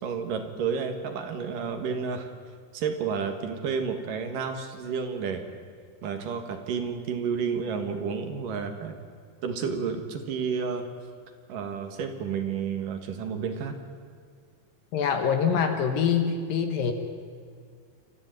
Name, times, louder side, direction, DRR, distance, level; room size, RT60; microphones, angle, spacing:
voice 1, 0.0-2.3 2.7-5.4 6.0-8.9 9.4-10.9 11.5-13.7, right 6 dB, 60° right, 6 dB, 3.0 m, -31 dB
voice 2, 14.9-16.9, left 7 dB, 65° left, 6 dB, 2.8 m, -25 dB
28.0 x 14.0 x 9.2 m, 2.2 s
omnidirectional pair, 4.8 m